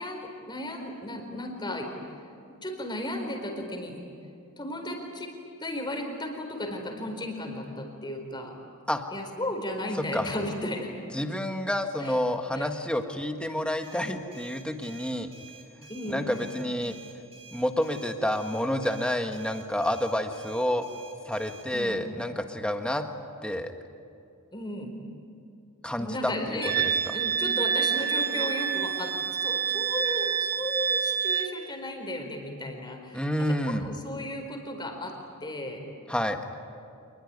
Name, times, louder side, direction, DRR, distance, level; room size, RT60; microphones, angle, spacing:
voice 1, 0.0-1.9 2.6-4.0 4.6-5.3 5.6-8.5 9.1-10.9 12.0-12.2 12.5-12.7 15.9-16.4 21.7-22.1 24.5-24.9 26.0-29.1 29.4-35.1 35.4-35.9, left 1 dB, 20° left, 3 dB, 4.4 m, -35 dB
voice 2, 10.0-10.3 11.1-15.3 15.8-17.0 17.5-20.9 21.2-23.0 23.4-23.7 25.8-26.6 27.1-27.2 33.1-33.9 36.1-36.4, left 1 dB, 5° left, 5 dB, 1.5 m, -29 dB
sound 1, 13.8-21.7, right 4 dB, 25° right, 6.6 m, -50 dB
Wind instrument woodwind instrument, 26.6-31.5, right 7 dB, 40° right, 1.3 m, -27 dB
27.5 x 21.5 x 9.7 m, 2.5 s
head